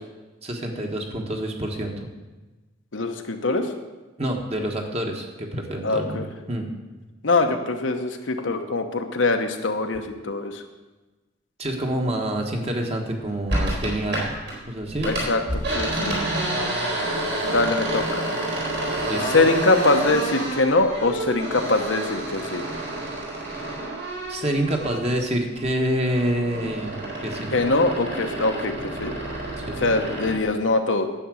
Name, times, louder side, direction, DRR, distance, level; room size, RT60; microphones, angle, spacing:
voice 1, 0.4-2.1 4.2-6.2 6.5-6.7 11.6-14.3 14.7-15.1 19.1-19.3 24.3-27.5 29.6-29.8, right 1 dB, 30° right, 2 dB, 1.4 m, -27 dB
voice 2, 2.9-3.7 5.8-6.2 7.2-10.6 15.0-16.2 17.5-18.3 19.3-22.6 27.5-29.1 29.8-31.1, left 3 dB, 70° left, 5 dB, 1.0 m, -23 dB
sound 1, 13.5-14.6 14.9-25.2 25.6-30.4, right 1 dB, 55° right, 3.6 m, -29 dB
10.0 x 8.0 x 6.3 m, 1.2 s
head